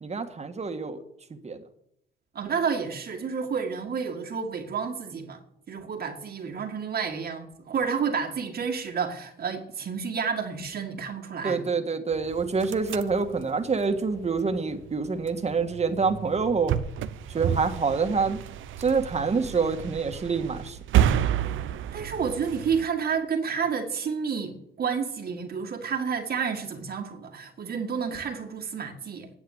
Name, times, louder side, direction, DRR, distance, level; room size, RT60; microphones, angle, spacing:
voice 1, 0.0-1.0 1.4-1.6 11.4-16.7 17.3-18.4 18.8-20.8, right 4 dB, 35° right, 1.7 m, -26 dB
voice 2, 2.4-5.4 5.7-11.6 21.9-29.3, right 6 dB, 50° right, 1.9 m, -30 dB
sound 1, 12.1-22.8, right 10 dB, 80° right, 0.8 m, -30 dB
10.0 x 8.0 x 9.5 m
cardioid pair, 90°, 20 cm